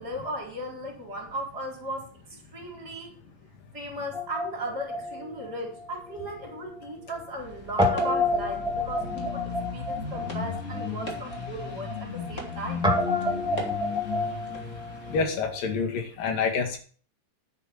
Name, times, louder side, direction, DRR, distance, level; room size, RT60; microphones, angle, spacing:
voice 1, 0.0-2.1 2.5-3.2 3.7-12.8, right 1 dB, 30° right, 0 dB, 4.9 m, -36 dB
Guitar, 4.1-6.5 6.8-6.9 7.8-15.6, left 2 dB, ahead, 1.3 m, -30 dB
sound 1, 7.4-15.2, left 4 dB, 25° left, 2.4 m, -36 dB
voice 2, 15.1-16.8, left 5 dB, 80° left, 4 dB, 3.8 m, -27 dB
10.5 x 9.0 x 4.5 m, 0.41 s
omnidirectional pair, 3.9 m